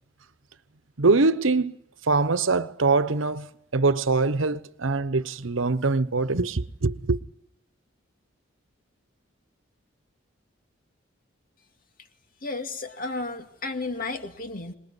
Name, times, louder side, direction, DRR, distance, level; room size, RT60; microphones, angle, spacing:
voice 1, 1.0-1.8 2.0-7.2, right 3 dB, 85° right, 1.0 m, -23 dB
voice 2, 12.4-14.7, left 3 dB, 45° left, 2.3 m, -33 dB
26.0 x 20.5 x 9.7 m
head